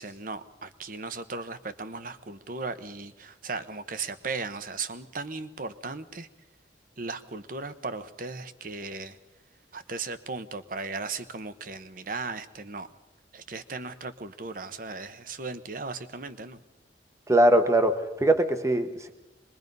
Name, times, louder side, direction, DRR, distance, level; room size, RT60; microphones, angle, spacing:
voice 1, 0.0-6.3 7.0-9.2 9.7-12.9 13.3-16.6, right 4 dB, 50° right, 12 dB, 1.0 m, -37 dB
voice 2, 17.3-19.1, right 1 dB, 15° right, 8 dB, 1.0 m, -22 dB
25.0 x 21.5 x 5.4 m, 1.1 s
head